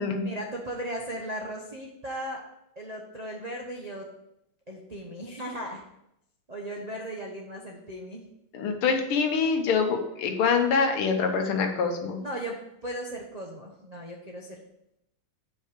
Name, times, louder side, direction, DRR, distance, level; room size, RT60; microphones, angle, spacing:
voice 1, 0.2-2.4 2.8-4.1 4.7-5.8 6.5-8.2 12.2-12.6 12.8-14.6, right 1 dB, 70° right, -2 dB, 0.3 m, -37 dB
voice 2, 8.5-12.2, left 5 dB, 75° left, 5 dB, 1.8 m, -25 dB
5.5 x 5.4 x 6.5 m, 0.82 s
omnidirectional pair, 2.4 m